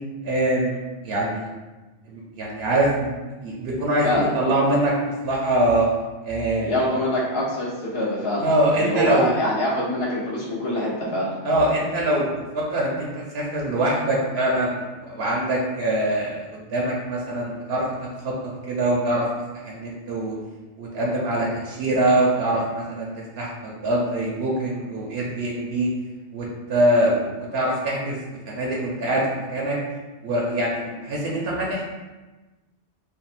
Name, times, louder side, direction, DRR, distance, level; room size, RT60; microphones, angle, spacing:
voice 1, 0.2-0.8 1.0-1.5 2.1-5.9 6.2-6.8 8.4-9.4 11.4-18.3 18.7-19.3 19.5-20.3 20.8-25.9 26.3-28.2 28.5-29.8 30.2-31.9, right 1 dB, 70° right, -3 dB, 0.8 m, -24 dB
voice 2, 4.0-4.3 6.6-8.5 8.8-11.3, left 1 dB, 65° left, -7 dB, 0.9 m, -25 dB
3.5 x 2.1 x 2.5 m, 1.2 s
omnidirectional pair, 1.2 m